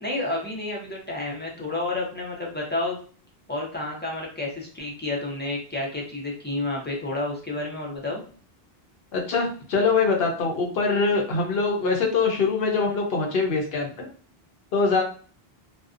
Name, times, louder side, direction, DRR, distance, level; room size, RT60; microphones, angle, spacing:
voice 1, 0.0-3.0 3.5-8.2, left 2 dB, 15° left, -3 dB, 0.5 m, -30 dB
voice 2, 9.1-14.1 14.7-15.0, left 4 dB, 75° left, 1 dB, 0.8 m, -23 dB
2.5 x 2.1 x 2.4 m, 0.42 s
omnidirectional pair, 1.1 m